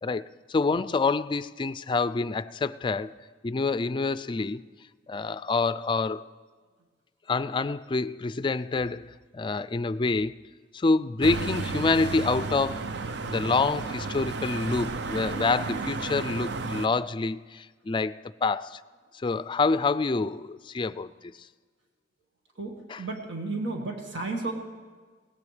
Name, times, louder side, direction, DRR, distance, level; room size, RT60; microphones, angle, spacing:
voice 1, 0.0-3.1 3.4-4.6 5.1-6.3 7.3-10.4 10.7-12.9 13.2-18.8 19.1-21.3 22.9-23.0, left 3 dB, 25° left, 0.4 m, -27 dB
sound 1, 11.2-16.9, right 3 dB, 70° right, 0.6 m, -33 dB
voice 2, 22.5-24.5, right 3 dB, 85° right, 1.7 m, -33 dB
21.0 x 17.5 x 3.3 m
head